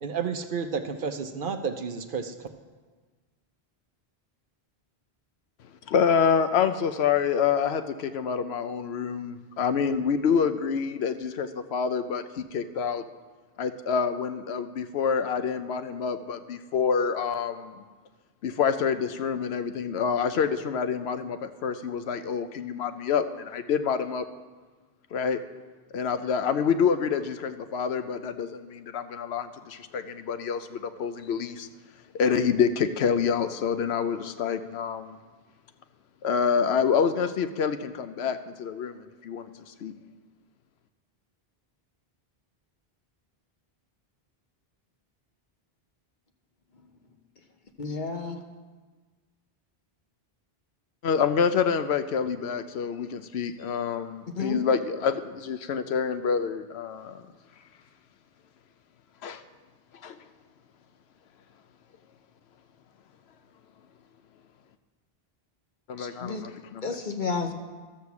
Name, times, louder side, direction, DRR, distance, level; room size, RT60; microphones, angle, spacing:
voice 1, 0.0-2.3, right 6 dB, 60° right, 7 dB, 0.9 m, -31 dB
voice 2, 5.9-13.0 13.6-17.8 18.4-24.3 25.1-25.4 25.9-31.7 32.1-35.2 36.2-39.9 51.0-57.3 59.2-59.4 60.0-60.2 65.9-66.9, left 6 dB, 85° left, 10 dB, 0.9 m, -27 dB
voice 3, 47.8-48.4 54.4-54.6 66.0-66.5 66.8-67.5, left 4 dB, 50° left, 4 dB, 1.1 m, -31 dB
12.5 x 6.5 x 7.0 m, 1.4 s
omnidirectional pair, 1.0 m